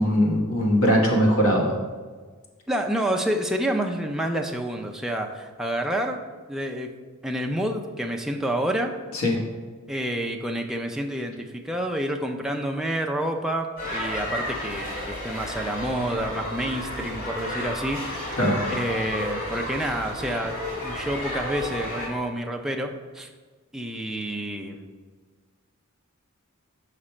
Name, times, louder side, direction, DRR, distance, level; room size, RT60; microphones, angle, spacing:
voice 1, 0.0-1.7 9.1-9.4 18.4-18.6, equal, 70° left, 0 dB, 1.3 m, -20 dB
voice 2, 2.7-6.2 6.5-6.9 7.2-8.9 9.9-18.4 18.7-23.3 23.7-24.9, right 1 dB, ahead, 1 dB, 0.5 m, -28 dB
sound 1, 13.8-22.1, left 1 dB, 40° left, 1.8 m, -32 dB
6.0 x 5.0 x 4.3 m, 1.4 s
head